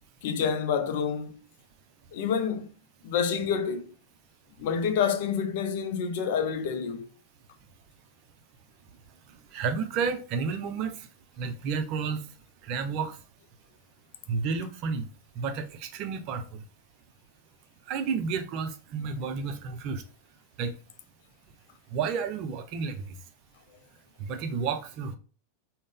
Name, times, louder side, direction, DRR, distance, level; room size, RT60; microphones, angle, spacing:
voice 1, 0.2-1.4 2.1-2.7 3.0-3.9 4.6-7.1, left 7 dB, 50° left, 0.4 m, -28 dB
voice 2, 9.5-10.9 11.4-12.2 12.6-13.1 14.3-15.1 15.4-16.6 17.9-20.0 20.6-20.7 21.9-23.0 24.2-25.1, right 5 dB, 40° right, 0.5 m, -31 dB
3.7 x 2.1 x 3.7 m
figure-of-eight pair, 90°, 0 cm